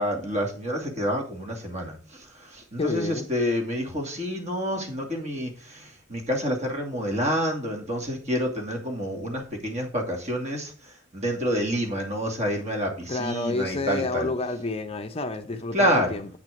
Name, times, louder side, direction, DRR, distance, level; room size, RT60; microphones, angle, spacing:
voice 1, 0.0-1.9 2.7-5.5 6.1-10.7 11.1-14.3 15.7-16.2, equal, 35° right, 2.5 m, -27 dB
voice 2, 2.8-3.3 13.1-16.3, left 3 dB, 30° left, 0.6 m, -29 dB
8.4 x 6.1 x 5.2 m
head